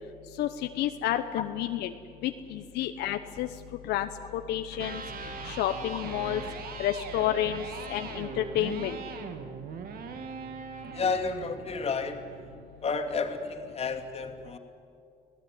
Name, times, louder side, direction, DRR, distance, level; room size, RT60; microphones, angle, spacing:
voice 1, 0.8-1.9 2.2-3.5 3.8-5.0 5.4-6.4 6.8-9.0, left 12 dB, 80° left, 8 dB, 1.0 m, -30 dB
Electric guitar, 4.6-12.7, right 5 dB, 60° right, 2.4 m, -41 dB
voice 2, 10.9-12.2 12.8-14.6, left 4 dB, 35° left, 4 dB, 2.6 m, -31 dB
26.5 x 17.5 x 9.5 m, 2.5 s
cardioid pair, 110°, 17 cm